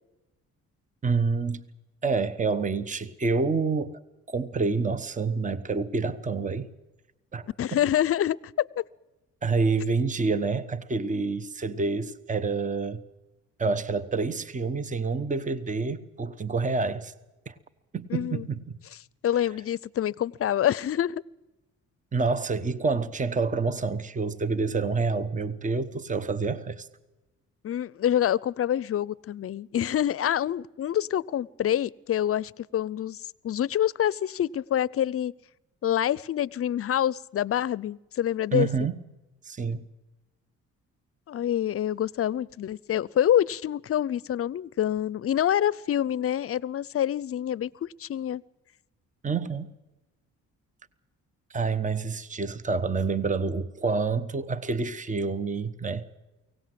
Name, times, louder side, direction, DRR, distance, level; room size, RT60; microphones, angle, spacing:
voice 1, 1.0-1.6 2.0-4.0 4.3-6.7 7.3-7.5 9.4-13.0 13.6-17.1 17.5-17.6 17.9-18.8 22.1-26.9 38.5-39.0 39.4-39.9 49.2-49.7 51.5-56.0, right 4 dB, 25° right, 1.1 m, -28 dB
voice 2, 7.6-8.8 18.1-18.4 19.2-21.2 27.6-35.3 35.8-38.7 41.3-48.4, left 11 dB, 50° left, 0.6 m, -26 dB
23.5 x 17.5 x 7.7 m
cardioid pair, 90°, 30 cm